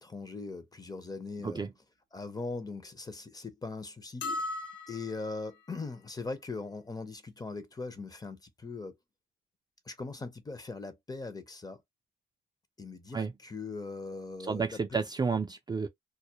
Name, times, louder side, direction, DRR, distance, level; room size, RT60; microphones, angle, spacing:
voice 1, 0.0-1.6 2.1-4.3 4.9-9.0 9.9-11.8 12.8-15.0, left 3 dB, 20° left, 0.6 m, -40 dB
sound 1, 4.2-5.6, left 2 dB, 65° left, 0.8 m, -37 dB
voice 2, 14.4-15.9, right 5 dB, 20° right, 0.3 m, -31 dB
2.2 x 2.0 x 2.7 m
cardioid pair, 90°, 20 cm